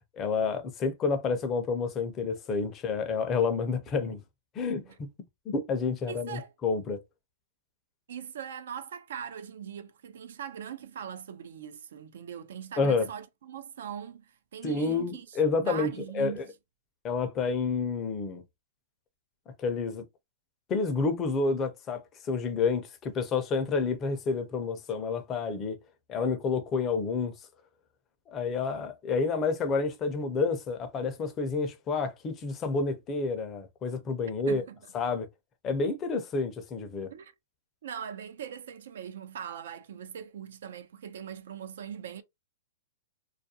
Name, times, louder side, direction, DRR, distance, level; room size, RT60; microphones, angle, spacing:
voice 1, 0.1-4.2 4.5-5.1 5.5-7.0 12.8-13.1 14.6-16.4 17.0-18.4 19.5-20.0 20.7-25.8 26.1-27.3 28.3-34.6 34.9-35.3 35.6-37.1, left 4 dB, 25° left, 0.5 m, -29 dB
voice 2, 6.1-6.5 8.1-16.4 34.5-34.8 37.1-37.3 37.8-42.2, right 8 dB, 70° right, 0.4 m, -41 dB
2.4 x 2.2 x 2.7 m
hypercardioid pair, 145°, 0 cm